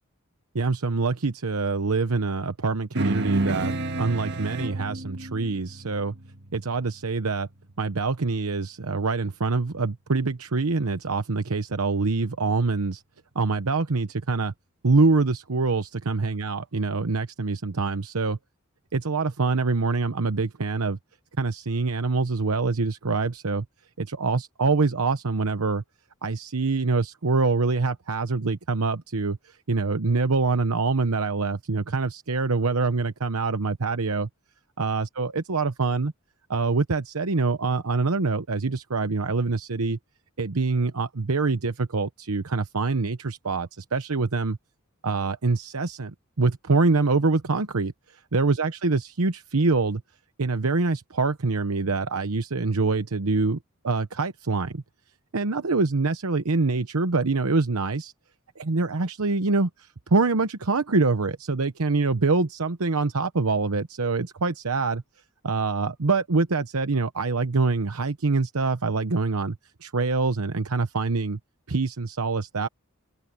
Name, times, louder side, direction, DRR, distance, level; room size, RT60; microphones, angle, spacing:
voice 1, 0.5-6.1 6.5-7.5 7.8-13.0 13.3-14.5 14.8-18.4 18.9-21.0 21.4-23.6 24.0-25.8 26.2-34.3 34.8-36.1 36.5-40.0 40.4-44.6 45.0-46.1 46.4-47.9 48.3-50.0 50.4-53.6 53.8-54.8 55.3-58.1 58.6-65.0 65.4-69.6 69.8-71.4 71.7-72.7, right 3 dB, 90° right, 1.0 m, -25 dB
sound 1, 2.9-7.7, right 2 dB, 55° right, 1.8 m, -31 dB
open air
head